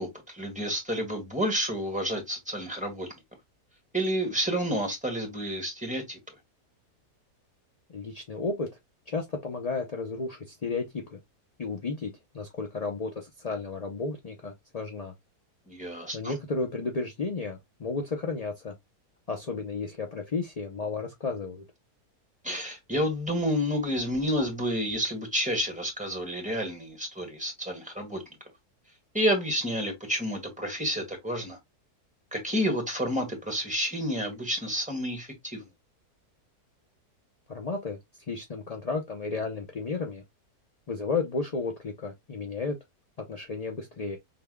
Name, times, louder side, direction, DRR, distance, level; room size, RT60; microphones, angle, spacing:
voice 1, 0.0-3.1 3.9-6.2 15.7-16.4 22.4-28.2 29.1-31.6 32.3-35.7, equal, 5° right, 1.6 m, -30 dB
voice 2, 7.9-8.7 9.1-11.2 11.6-15.1 16.1-18.7 19.3-21.6 37.5-38.0 38.3-40.2 40.9-42.8 43.3-44.2, left 4 dB, 50° left, 0.4 m, -33 dB
5.7 x 3.5 x 2.2 m
omnidirectional pair, 1.7 m